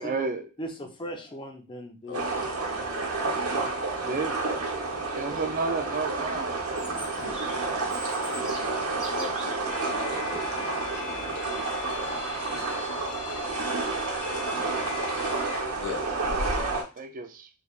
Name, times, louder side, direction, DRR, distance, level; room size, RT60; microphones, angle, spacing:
voice 1, 0.0-0.5 4.1-4.5 5.1-7.0 16.7-17.5, right 4 dB, 40° right, 0.4 m, -32 dB
voice 2, 0.6-2.9 3.5-4.2, equal, 20° left, 0.6 m, -40 dB
voice 3, 2.0-2.5 7.2-7.7 8.5-12.1 15.8-16.1, left 4 dB, 55° left, 0.8 m, -41 dB
sound 1, 2.1-16.8, right 3 dB, 85° right, 1.0 m, -30 dB
Chirp tweet, 6.6-9.6, equal, 5° right, 1.2 m, -42 dB
sound 2, 9.7-15.6, left 9 dB, 85° left, 0.3 m, -40 dB
3.4 x 3.3 x 2.4 m
head